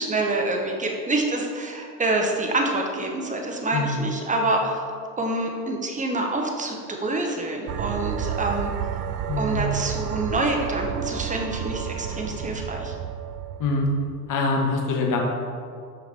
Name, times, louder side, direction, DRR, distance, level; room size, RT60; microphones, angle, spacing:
voice 1, 0.0-4.8 5.2-8.7 9.4-12.9, right 2 dB, 15° right, 1 dB, 1.1 m, -26 dB
voice 2, 3.7-4.0 9.3-9.8 13.6-13.9 14.3-15.2, left 3 dB, 40° left, 0 dB, 1.4 m, -24 dB
sound 1, 7.7-14.3, right 9 dB, 40° right, 0.5 m, -31 dB
5.7 x 5.3 x 4.4 m, 2.2 s
hypercardioid pair, 75°, 48 cm